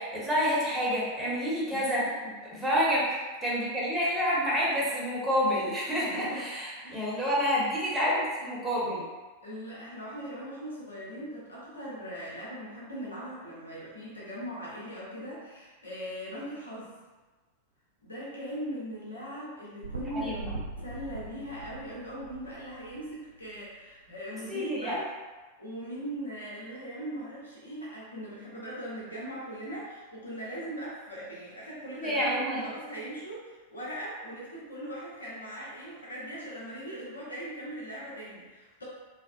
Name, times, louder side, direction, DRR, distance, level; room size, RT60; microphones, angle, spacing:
voice 1, 0.0-2.0 2.5-3.1 3.4-9.0 20.1-20.3 24.5-25.0 32.0-32.6, equal, 5° right, -7 dB, 0.9 m, -28 dB
voice 2, 1.7-2.4 6.1-6.5 6.8-7.1 9.4-16.9 18.0-25.1 25.6-38.8, equal, 75° left, -6 dB, 0.8 m, -40 dB
sound 1, 19.8-23.6 24.2-24.3, right 3 dB, 70° right, 0.3 m, -41 dB
3.3 x 2.0 x 2.3 m, 1.3 s
figure-of-eight pair, 90°, 0 cm